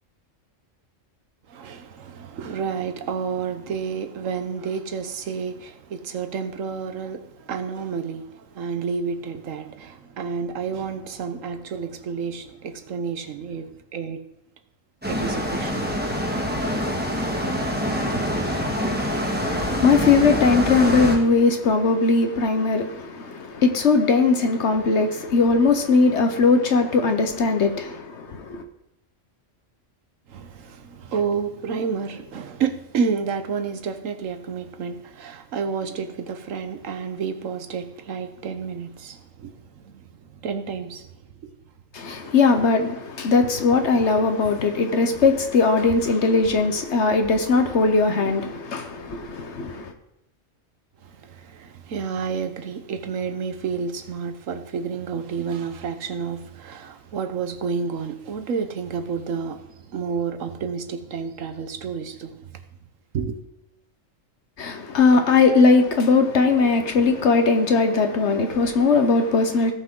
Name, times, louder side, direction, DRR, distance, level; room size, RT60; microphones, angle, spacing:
voice 1, 1.5-14.2 15.1-15.9 18.2-18.3 30.3-41.1 41.4-41.5 42.2-42.3 51.0-62.6 63.1-63.4, right 6 dB, 80° right, 1.3 m, -30 dB
sound 1, 15.0-21.2, equal, 10° right, 1.8 m, -25 dB
voice 2, 19.4-28.6 41.9-49.9 64.6-69.7, left 4 dB, 60° left, 1.2 m, -19 dB
16.5 x 6.0 x 3.8 m
omnidirectional pair, 1.3 m